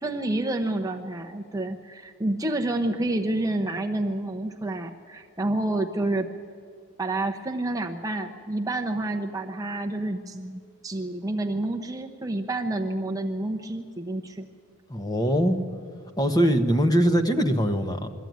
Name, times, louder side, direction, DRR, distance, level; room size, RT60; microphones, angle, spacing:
voice 1, 0.0-6.3 7.0-14.5, right 2 dB, 15° right, 3 dB, 0.8 m, -29 dB
voice 2, 14.9-15.6 16.2-18.1, equal, 20° left, 7 dB, 1.2 m, -22 dB
22.0 x 14.0 x 9.3 m, 2.1 s
head